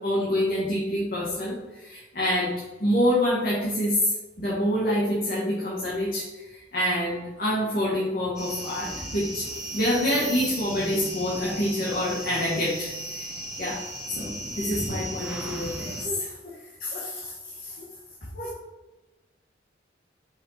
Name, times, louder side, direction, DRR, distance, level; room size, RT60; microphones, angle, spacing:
voice 1, 0.0-2.5 2.8-13.3 13.6-13.8 14.2-17.9 18.3-18.5, equal, 50° left, -6 dB, 1.7 m, -27 dB
sound 1, 8.4-16.1, right 1 dB, 5° right, 1.5 m, -35 dB
5.6 x 5.4 x 4.9 m, 1.1 s
head